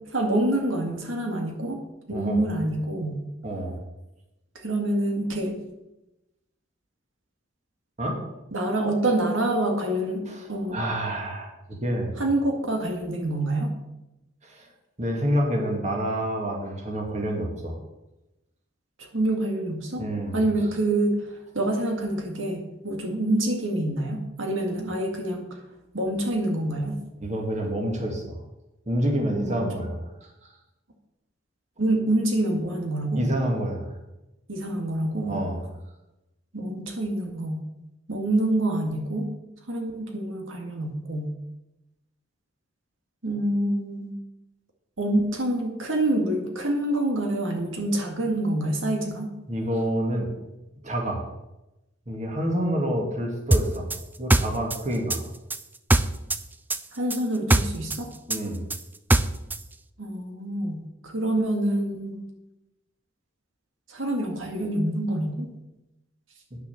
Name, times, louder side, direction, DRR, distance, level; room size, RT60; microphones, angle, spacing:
voice 1, 0.1-3.2 4.6-5.6 8.5-10.8 12.2-13.7 19.0-20.0 20.3-25.6 25.9-27.0 29.4-29.7 31.8-33.2 34.5-35.4 36.5-37.6 38.1-39.3 39.7-41.3 43.2-44.1 45.0-49.3 57.0-58.1 60.0-62.2 63.9-65.5, right 1 dB, 85° right, 2 dB, 1.9 m, -26 dB
voice 2, 2.1-2.5 3.4-3.8 8.0-8.3 10.3-10.4 10.7-12.2 14.4-14.7 15.0-17.8 20.0-20.4 27.2-28.4 28.9-30.0 33.2-33.9 35.3-35.6 49.5-50.3 50.8-51.3 52.1-53.9 54.2-55.2 58.3-58.6, equal, 35° right, 0 dB, 2.1 m, -28 dB
sound 1, 53.5-56.4 56.7-59.6, right 2 dB, 10° right, 0.4 m, -22 dB
9.5 x 6.7 x 7.2 m, 0.95 s
head